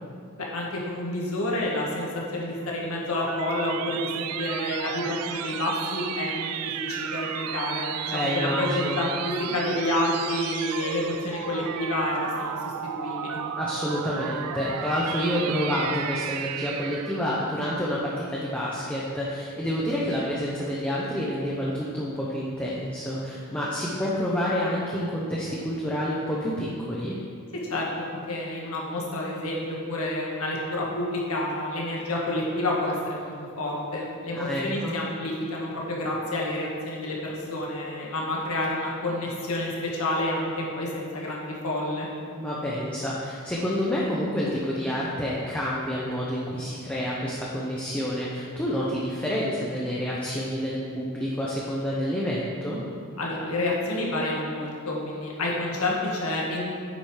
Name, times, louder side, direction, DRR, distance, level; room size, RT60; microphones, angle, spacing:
voice 1, 0.4-13.4 27.7-42.1 53.2-56.6, left 1 dB, 75° left, -3 dB, 1.6 m, -29 dB
sound 1, 2.6-17.3, right 9 dB, 85° right, 0.4 m, -34 dB
voice 2, 8.1-9.0 13.6-27.2 34.3-34.9 42.3-52.8, equal, 5° left, -6 dB, 0.8 m, -28 dB
8.6 x 5.1 x 4.8 m, 2.2 s
head